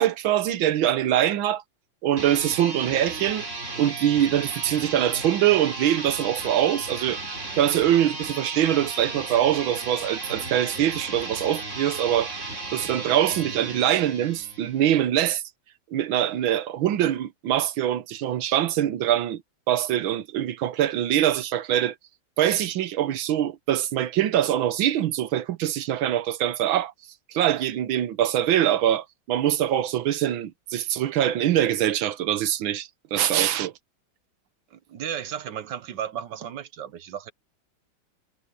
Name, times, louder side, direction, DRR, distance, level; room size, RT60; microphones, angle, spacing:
voice 1, 0.0-1.6 2.0-3.5 3.8-7.2 7.6-12.5 12.7-15.4 15.9-19.4 19.7-22.0 22.4-26.9 27.3-33.7, right 11 dB, 90° right, 1.7 m, -23 dB
sound 1, 2.1-14.8, right 2 dB, 35° right, 3.6 m, -35 dB
voice 2, 34.7-37.3, right 9 dB, 65° right, 1.6 m, -34 dB
omnidirectional pair, 2.1 m